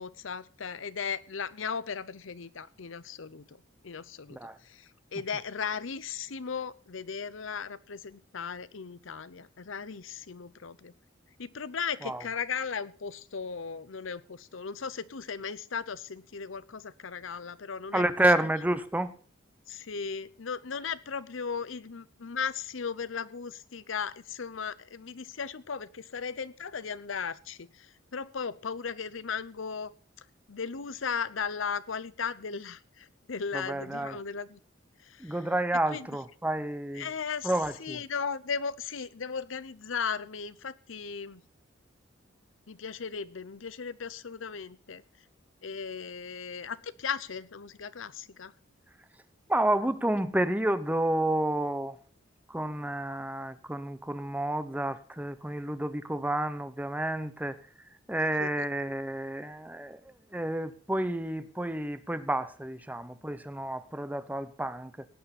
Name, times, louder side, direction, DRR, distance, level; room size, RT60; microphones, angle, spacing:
voice 1, 0.0-3.6 3.8-4.4 4.6-10.9 11.4-18.1 19.7-29.9 30.5-34.6 35.0-35.4 35.9-36.1 37.0-37.5 37.8-41.4 42.7-45.0 45.6-48.5 53.1-53.2 58.4-58.7, left 6 dB, 85° left, 0.8 m, -36 dB
voice 2, 17.9-19.1 33.5-34.2 35.2-37.1 37.4-38.0 49.5-52.0 52.5-57.6 58.1-65.1, right 1 dB, 10° right, 0.9 m, -30 dB
17.5 x 9.3 x 4.2 m
head